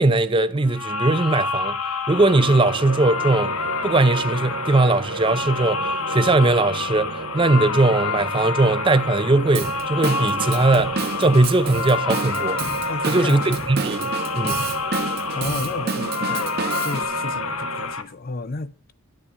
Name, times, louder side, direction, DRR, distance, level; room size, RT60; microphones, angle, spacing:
voice 1, 0.0-1.8 2.1-3.6 3.8-12.6 13.1-14.7, right 2 dB, 20° right, 0.5 m, -20 dB
sound 1, 0.7-18.0, left 4 dB, 80° left, 1.1 m, -28 dB
sound 2, 2.2-18.0, right 4 dB, 75° right, 1.1 m, -34 dB
Drum kit / Drum, 9.5-17.0, right 4 dB, 45° right, 0.9 m, -30 dB
voice 2, 12.9-13.6 15.3-16.6 16.8-18.9, left 3 dB, 40° left, 0.5 m, -32 dB
11.0 x 9.9 x 5.0 m
head